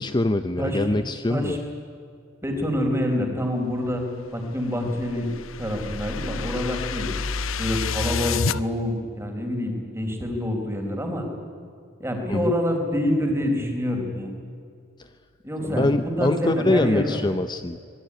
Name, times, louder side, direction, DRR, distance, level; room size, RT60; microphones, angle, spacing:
voice 1, 0.0-1.6 12.3-12.5 15.7-17.8, left 2 dB, 20° left, 11 dB, 0.6 m, -23 dB
voice 2, 0.6-0.9 1.3-1.6 2.4-4.0 4.3-5.3 5.6-7.1 7.6-11.2 12.0-14.3 15.4-17.2, left 1 dB, 10° right, 2 dB, 4.5 m, -26 dB
sound 1, 4.6-8.6, left 5 dB, 80° left, 0.8 m, -29 dB
25.5 x 21.0 x 9.9 m, 2.4 s
head